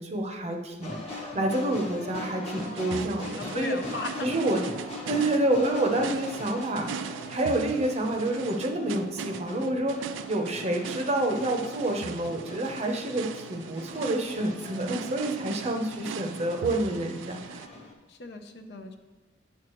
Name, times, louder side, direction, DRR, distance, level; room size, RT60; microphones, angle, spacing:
voice 1, 0.0-3.8 4.2-4.6 5.1-17.6, right 1 dB, 35° right, 3 dB, 0.7 m, -28 dB
sound 1, 0.8-17.9, left 2 dB, 35° left, 1.1 m, -42 dB
sound 2, 2.6-17.7, right 7 dB, 75° right, 0.3 m, -40 dB
voice 2, 2.9-4.4 15.8-16.1 18.1-19.0, left 3 dB, 55° left, 6 dB, 0.6 m, -38 dB
9.6 x 6.3 x 3.0 m, 1.3 s
head